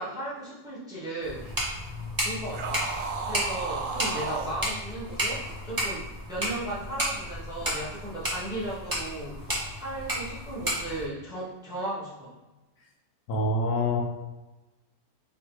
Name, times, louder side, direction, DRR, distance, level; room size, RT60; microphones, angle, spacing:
voice 1, 0.0-1.5 2.2-2.9 3.2-12.4, right 1 dB, 5° right, -8 dB, 0.9 m, -36 dB
sound 1, 1.2-11.1, equal, 20° right, 0.5 m, -33 dB
sound 2, 2.5-4.6, right 4 dB, 70° right, 0.8 m, -33 dB
voice 2, 13.3-14.0, left 1 dB, 75° left, -1 dB, 1.2 m, -25 dB
3.2 x 2.9 x 4.5 m, 1.1 s
omnidirectional pair, 1.7 m